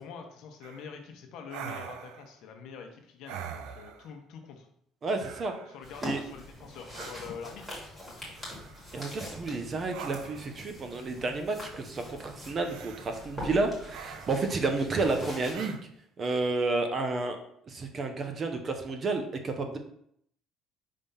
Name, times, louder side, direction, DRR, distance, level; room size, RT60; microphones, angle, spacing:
voice 1, 0.0-4.7 5.7-8.6, left 6 dB, 60° left, 4 dB, 1.0 m, -45 dB
sound 1, 0.6-0.9 1.5-2.3 3.3-4.1 5.2-5.8 6.9-7.2 8.4-8.9 9.9-10.6 12.6-13.2 13.9-14.6 15.5-15.8, right 8 dB, 85° right, 0.5 m, -43 dB
voice 2, 5.0-5.5 6.0-6.2 8.9-15.8 16.2-17.4 17.7-19.8, right 3 dB, 25° right, 6 dB, 0.7 m, -31 dB
sound 2, 5.8-15.5, left 1 dB, 10° right, 2.1 m, -43 dB
5.3 x 3.4 x 5.6 m, 0.70 s
cardioid pair, 170°, 0 cm